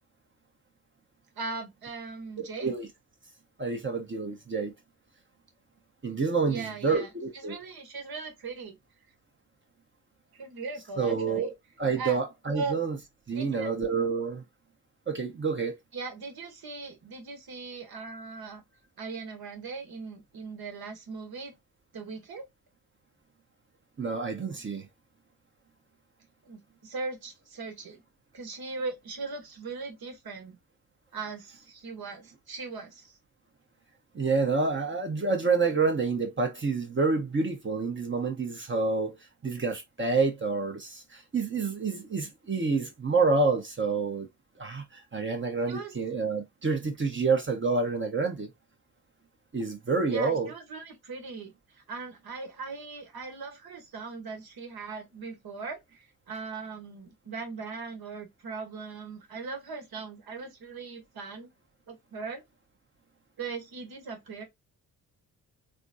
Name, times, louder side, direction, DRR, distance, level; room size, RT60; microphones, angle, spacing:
voice 1, 1.4-2.7 6.5-7.1 7.3-8.8 10.3-11.5 12.0-12.2 12.5-12.8 13.3-13.8 15.9-18.6 19.0-21.5 21.9-22.5 26.5-28.0 28.3-30.6 31.1-33.1 45.7-45.9 50.1-61.5 61.9-62.4 63.4-64.4, right 4 dB, 55° right, 1.3 m, -39 dB
voice 2, 2.4-2.9 3.6-4.7 6.0-7.6 11.0-13.0 13.3-14.4 15.1-15.8 24.0-24.9 34.1-39.2 39.4-44.3 44.6-48.5 49.5-50.5, right 4 dB, 25° right, 1.0 m, -28 dB
3.4 x 2.2 x 2.7 m
hypercardioid pair, 45°, 45 cm